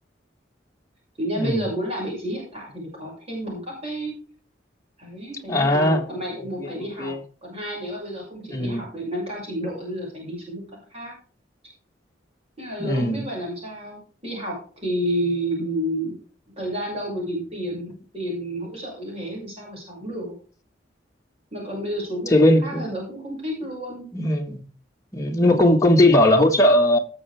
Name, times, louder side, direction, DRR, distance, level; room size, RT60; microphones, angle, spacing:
voice 1, 1.2-4.1 5.0-7.1 7.4-11.1 12.6-16.1 16.6-20.3 21.5-24.1 25.4-25.8, equal, 35° right, 6.5 m, -30 dB
voice 2, 5.5-6.0 6.6-7.2 8.4-8.8 12.8-13.2 22.3-22.9 24.1-24.6 25.1-27.0, left 1 dB, 20° left, 1.8 m, -19 dB
19.0 x 7.3 x 3.5 m
head